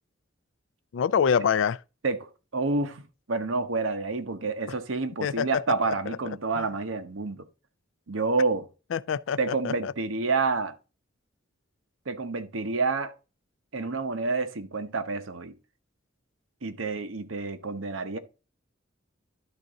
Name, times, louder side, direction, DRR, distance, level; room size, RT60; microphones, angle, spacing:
voice 1, 0.9-1.8 5.2-5.6 6.1-6.2 6.6-6.7 8.9-9.9, left 7 dB, 75° left, 0.4 m, -26 dB
voice 2, 2.0-3.0 3.3-7.5 8.1-8.7 9.4-10.7 12.1-13.1 13.7-15.5 16.6-18.2, right 3 dB, 90° right, 1.0 m, -28 dB
12.0 x 4.0 x 3.6 m
head